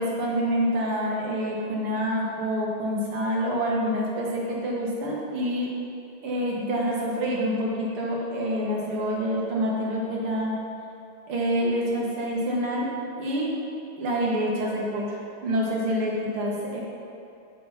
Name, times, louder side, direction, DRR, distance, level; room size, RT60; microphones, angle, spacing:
voice 1, 0.0-5.7 6.2-10.5 11.3-12.9 13.2-13.5 14.0-16.8, equal, 80° right, -3 dB, 2.3 m, -27 dB
7.4 x 6.2 x 5.7 m, 2.6 s
omnidirectional pair, 2.4 m